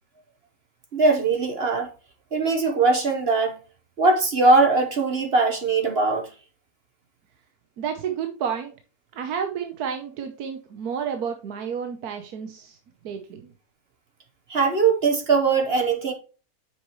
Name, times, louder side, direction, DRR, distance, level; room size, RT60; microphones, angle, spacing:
voice 1, 0.9-1.9 2.3-3.5 4.0-6.3 14.5-16.1, right 3 dB, 45° right, 1.1 m, -20 dB
voice 2, 7.8-8.7 9.1-12.8 13.0-13.5, right 7 dB, 80° right, 1.4 m, -31 dB
8.1 x 6.4 x 3.0 m
omnidirectional pair, 1.6 m